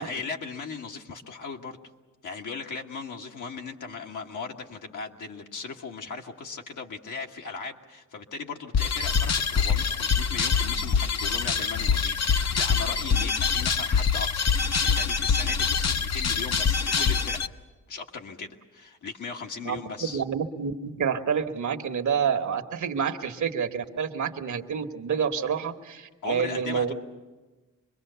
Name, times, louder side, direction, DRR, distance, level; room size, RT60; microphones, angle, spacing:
voice 1, 0.0-1.8 2.2-17.4 17.9-20.2 26.2-26.9, left 4 dB, 70° left, 1 dB, 1.6 m, -38 dB
sound 1, 8.7-17.5, left 6 dB, 55° left, 0.9 m, -25 dB
voice 2, 20.1-26.9, right 7 dB, 65° right, 6 dB, 1.4 m, -28 dB
25.5 x 22.0 x 6.9 m, 1.2 s
cardioid pair, 85°, 32 cm